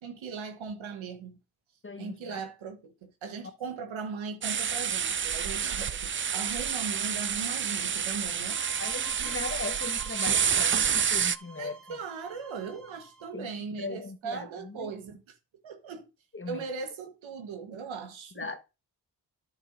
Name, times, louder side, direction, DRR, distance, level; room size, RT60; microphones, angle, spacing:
voice 1, 0.0-1.4 2.0-8.6 9.2-9.3 11.6-15.2 15.6-16.1 16.5-18.5, right 5 dB, 80° right, 1.3 m, -39 dB
voice 2, 1.8-2.4 8.8-12.0 13.3-13.5 13.8-14.9 16.3-16.6 18.4-18.6, left 3 dB, 25° left, 1.3 m, -38 dB
sound 1, 4.4-11.4, right 7 dB, 30° right, 0.4 m, -29 dB
sound 2, 8.4-13.3, right 3 dB, ahead, 1.9 m, -50 dB
10.0 x 7.9 x 2.6 m
supercardioid pair, 40°, 46 cm